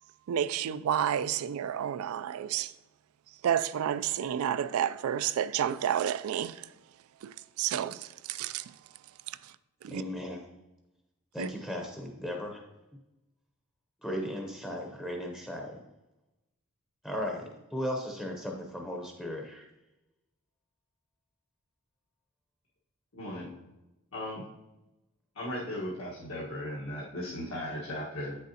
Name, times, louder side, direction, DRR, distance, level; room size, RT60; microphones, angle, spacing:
voice 1, 0.3-2.7 3.4-6.6 7.2-8.6 9.8-10.0 11.4-11.5, right 9 dB, 85° right, 0.3 m, -30 dB
voice 2, 9.9-10.5 11.3-12.7 14.0-15.8 17.0-19.7, equal, 5° left, 0.7 m, -36 dB
voice 3, 23.1-23.5 24.1-24.5 25.3-28.4, left 1 dB, 75° left, 1.4 m, -37 dB
8.3 x 6.3 x 2.8 m
head